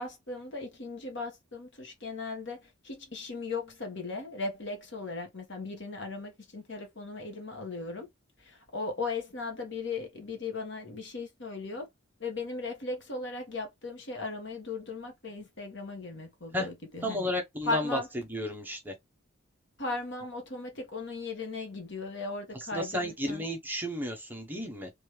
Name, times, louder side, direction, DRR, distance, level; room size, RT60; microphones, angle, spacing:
voice 1, 0.0-8.1 8.4-11.9 12.2-17.3 17.6-18.1 19.8-23.5, left 3 dB, 55° left, 1.5 m, -37 dB
voice 2, 17.0-18.0 18.3-18.9 22.7-24.9, left 1 dB, 10° right, 0.9 m, -32 dB
3.3 x 3.3 x 3.2 m
head